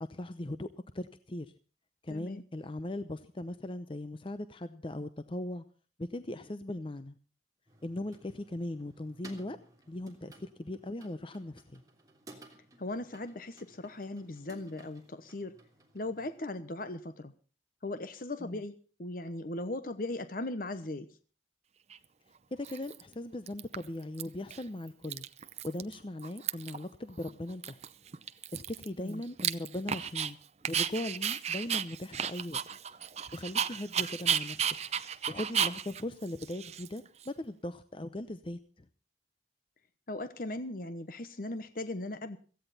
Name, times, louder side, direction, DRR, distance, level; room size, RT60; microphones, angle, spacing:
voice 1, 0.0-1.5 2.0-5.6 6.0-7.2 7.8-9.6 9.9-11.8 18.4-18.6 22.5-25.2 25.6-27.8 28.5-30.4 30.7-32.6 33.3-34.6 35.3-38.9, left 1 dB, 30° left, 11 dB, 0.7 m, -39 dB
voice 2, 2.1-2.4 12.8-15.6 15.9-17.3 17.8-21.1 29.0-29.2 40.1-42.4, left 2 dB, 50° left, 11 dB, 1.0 m, -38 dB
sound 1, 7.7-16.4, right 2 dB, 20° right, 3.2 m, -57 dB
Dog, 21.9-22.0 22.6-23.1 23.5-24.2 24.5-24.6 24.9-25.9 26.2-26.8 27.2-27.3 27.6-30.3 30.6-37.3, right 8 dB, 40° right, 0.7 m, -33 dB
17.0 x 15.5 x 4.1 m, 0.38 s
head